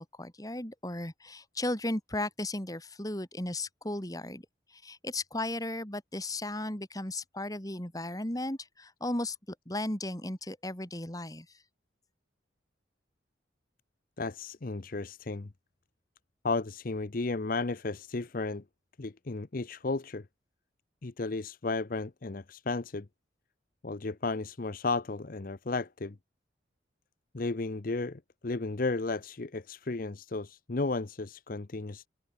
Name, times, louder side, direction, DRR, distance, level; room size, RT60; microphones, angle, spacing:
voice 1, 0.0-9.4 9.7-11.6, left 1 dB, 20° left, 2.9 m, -35 dB
voice 2, 14.2-15.5 16.4-18.6 19.0-20.2 21.0-23.1 23.8-26.1 27.3-32.1, left 3 dB, 50° left, 0.7 m, -34 dB
open air
head